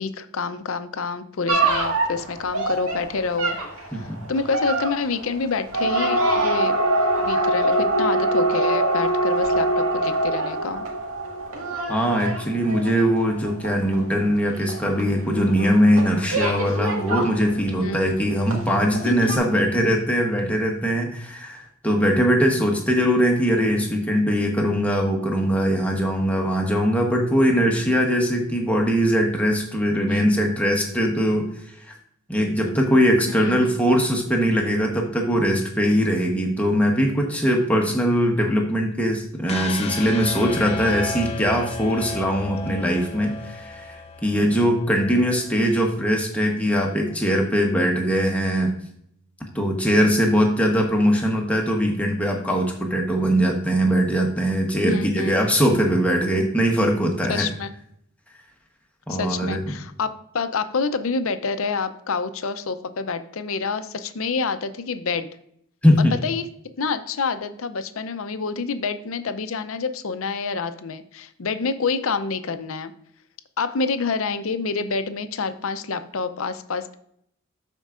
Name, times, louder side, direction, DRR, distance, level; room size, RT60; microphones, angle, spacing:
voice 1, 0.0-6.7 7.2-10.9 17.8-18.0 19.1-19.3 30.1-30.6 33.3-33.8 54.9-55.4 57.3-57.7 59.1-60.1 60.3-65.3 66.2-66.5 66.8-72.9 73.6-77.0, left 4 dB, 75° left, 10 dB, 0.6 m, -27 dB
sound 1, 1.5-18.2 18.5-19.0 19.3-19.4, right 1 dB, 80° right, 1.8 m, -24 dB
voice 2, 3.9-4.2 11.9-31.7 32.3-48.7 49.5-57.5 59.1-59.6 65.8-66.1, equal, 5° left, 1 dB, 1.0 m, -21 dB
sound 2, 39.5-45.6, left 4 dB, 30° left, 0.4 m, -34 dB
13.5 x 4.5 x 2.5 m, 0.71 s
head